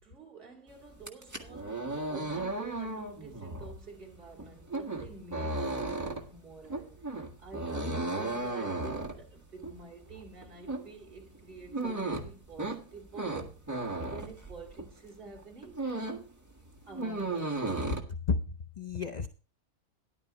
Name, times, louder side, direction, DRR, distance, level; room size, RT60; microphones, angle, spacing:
voice 1, 0.0-15.9 16.8-17.7, right 4 dB, 40° right, 2.8 m, -49 dB
sound 1, 0.9-15.0 15.4-16.3 16.6-18.0, right 2 dB, 10° right, 1.5 m, -35 dB
voice 2, 18.3-19.3, left 4 dB, 45° left, 0.5 m, -32 dB
13.5 x 11.0 x 3.0 m
omnidirectional pair, 1.5 m